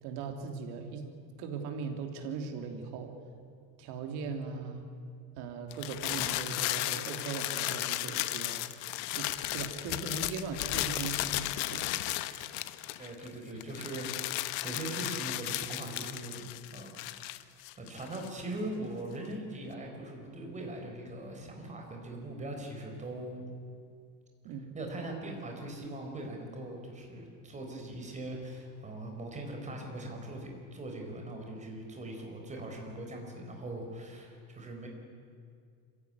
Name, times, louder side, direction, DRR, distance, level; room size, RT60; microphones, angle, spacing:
voice 1, 0.0-1.1 1.4-3.2 3.8-4.9 5.4-8.6 9.1-11.9 24.4-24.7, right 5 dB, 75° right, 5 dB, 3.2 m, -39 dB
sound 1, 5.7-13.3 13.6-18.4, left 17 dB, 85° left, 1.1 m, -35 dB
voice 2, 13.0-14.4 14.6-16.4 16.7-17.5 17.8-23.4 24.7-34.9, right 1 dB, 20° right, 2 dB, 4.2 m, -41 dB
25.5 x 15.5 x 9.8 m, 2.3 s
cardioid pair, 160°, 39 cm